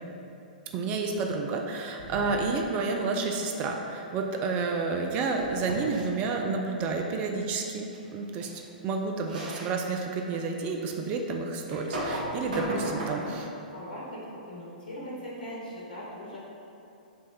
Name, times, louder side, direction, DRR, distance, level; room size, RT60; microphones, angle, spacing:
voice 1, 0.7-13.5, right 4 dB, 30° right, 2 dB, 0.3 m, -30 dB
sound 1, 2.0-2.5 5.4-6.1 7.9-8.0 8.4-8.6 9.3-9.7 10.3-10.4 11.7-13.4, right 1 dB, 65° right, 0.9 m, -34 dB
voice 2, 13.7-14.2 14.5-16.4, equal, 65° left, -6 dB, 1.1 m, -40 dB
3.5 x 3.1 x 4.2 m, 2.8 s
figure-of-eight pair, 110°, 5 cm